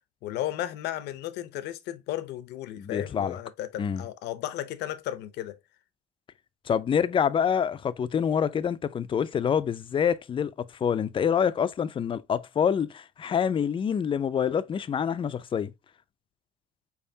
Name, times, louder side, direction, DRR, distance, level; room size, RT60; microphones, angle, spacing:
voice 1, 0.2-5.6, left 13 dB, 80° left, 0.7 m, -34 dB
voice 2, 2.8-3.4 3.8-4.0 6.7-15.7, left 7 dB, 30° left, 0.4 m, -26 dB
4.6 x 3.5 x 2.6 m
cardioid pair, 110°, 17 cm